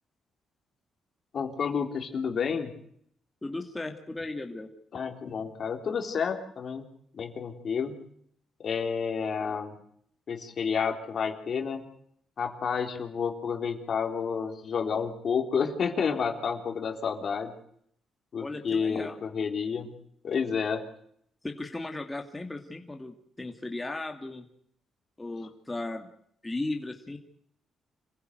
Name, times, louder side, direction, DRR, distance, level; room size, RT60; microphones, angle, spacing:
voice 1, 1.3-2.7 4.9-6.9 7.1-8.0 8.6-9.8 10.3-11.8 12.4-17.5 18.3-19.9 20.2-20.8, left 6 dB, 55° left, 4 dB, 3.6 m, -30 dB
voice 2, 3.4-4.7 18.4-19.2 21.4-24.4 25.2-26.1 26.4-27.2, left 2 dB, 15° left, 3 dB, 2.5 m, -36 dB
27.0 x 15.5 x 8.1 m, 0.68 s
cardioid pair, 90°, 0 cm